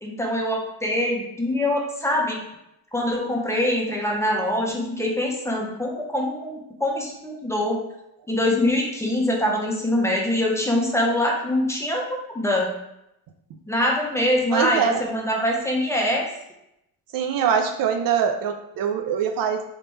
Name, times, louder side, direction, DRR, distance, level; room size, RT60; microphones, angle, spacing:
voice 1, 0.0-2.4 2.9-7.8 8.3-12.7 13.7-16.3, left 1 dB, 5° left, -1 dB, 0.9 m, -24 dB
voice 2, 14.5-15.0 17.1-19.6, right 7 dB, 60° right, 5 dB, 0.5 m, -23 dB
3.2 x 3.1 x 3.1 m, 0.83 s
supercardioid pair, 80°, 39 cm